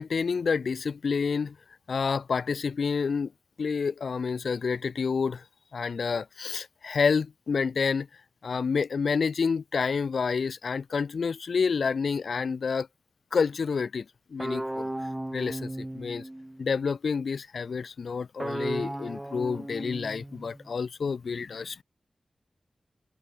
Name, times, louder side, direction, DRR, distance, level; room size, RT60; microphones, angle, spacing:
voice 1, 0.0-1.5 1.9-3.3 3.6-5.4 5.7-8.1 8.4-12.9 13.3-14.0 14.3-14.9 15.3-16.2 16.6-21.8, left 5 dB, 85° left, 1.7 m, -28 dB
sound 1, 14.4-16.7 18.4-20.8, right 1 dB, 15° right, 3.8 m, -35 dB
cardioid pair, 55°, 0 cm